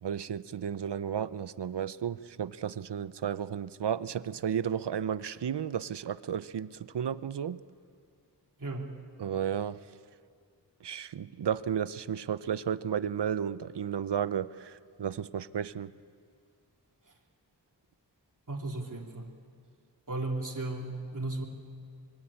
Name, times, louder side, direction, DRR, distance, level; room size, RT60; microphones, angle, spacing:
voice 1, 0.0-7.6 9.2-9.8 10.8-15.9, right 8 dB, 75° right, 15 dB, 0.7 m, -33 dB
voice 2, 8.6-8.9 18.5-19.3 20.1-21.4, right 2 dB, 45° right, -1 dB, 3.3 m, -35 dB
25.0 x 22.5 x 8.8 m, 2.2 s
wide cardioid pair, 55°, 42 cm